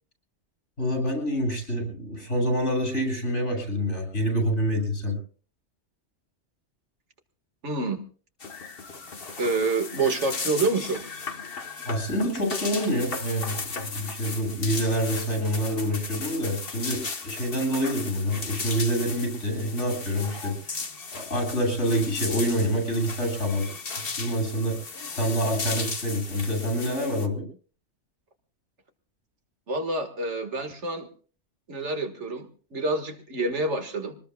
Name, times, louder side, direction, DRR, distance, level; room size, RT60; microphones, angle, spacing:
voice 1, 0.8-5.2 11.8-20.8 21.1-23.7 24.2-24.8 25.1-27.5, equal, 85° left, 3 dB, 8.1 m, -27 dB
voice 2, 7.6-8.0 9.4-11.1 29.7-31.1 31.7-34.2, right 3 dB, 85° right, 5 dB, 2.1 m, -27 dB
sound 1, 8.4-27.3, left 4 dB, 55° left, 1.4 m, -36 dB
25.0 x 19.5 x 2.3 m, 0.40 s
omnidirectional pair, 1.2 m